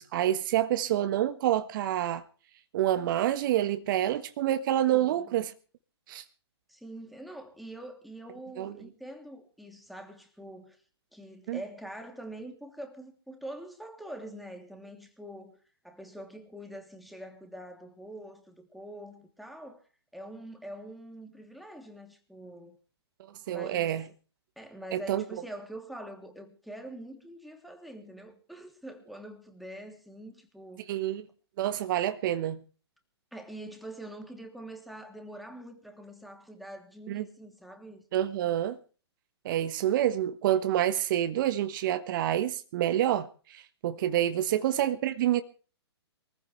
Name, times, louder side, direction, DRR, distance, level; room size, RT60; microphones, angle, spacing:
voice 1, 0.0-2.2 2.7-5.5 6.1-6.2 8.6-8.7 11.5-11.6 23.5-24.0 24.9-25.2 30.9-31.2 31.6-32.6 37.1-37.2 38.1-38.8 39.4-45.4, right 12 dB, 50° right, 1.4 m, -27 dB
voice 2, 4.9-5.3 6.7-10.8 11.1-19.8 20.1-22.8 23.5-24.0 24.6-31.0 33.3-38.0, right 1 dB, ahead, 2.9 m, -45 dB
23.5 x 15.0 x 3.3 m
hypercardioid pair, 125°, 14 cm